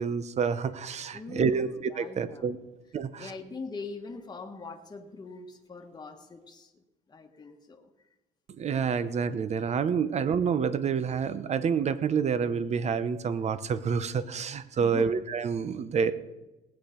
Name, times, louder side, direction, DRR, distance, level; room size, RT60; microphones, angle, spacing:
voice 1, 0.0-1.7 2.0-2.6 2.9-3.3 8.6-16.1, right 6 dB, 40° right, 13 dB, 0.9 m, -28 dB
voice 2, 1.1-2.5 3.1-7.9 9.0-9.1 10.0-10.2 14.8-15.1, left 4 dB, 25° left, 2 dB, 1.4 m, -42 dB
19.0 x 8.4 x 5.2 m, 1.1 s
cardioid pair, 110°, 17 cm